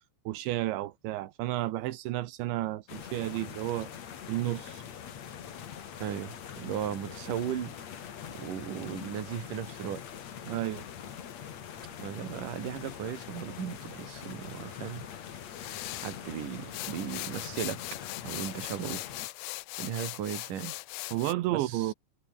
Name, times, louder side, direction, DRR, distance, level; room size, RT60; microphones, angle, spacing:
voice 1, 0.3-3.9 4.3-4.8 10.5-10.9 21.1-21.9, right 16 dB, 85° right, 3.4 m, -32 dB
sound 1, 2.9-19.3, left 8 dB, 50° left, 2.5 m, -43 dB
voice 2, 6.0-7.7 8.3-10.0 12.0-15.1 15.6-15.8 16.0-17.8 18.2-19.0 19.8-20.7 21.5-21.9, right 9 dB, 50° right, 3.7 m, -36 dB
sound 2, 15.4-16.2 16.7-21.3, left 20 dB, 90° left, 2.2 m, -40 dB
omnidirectional pair, 5.3 m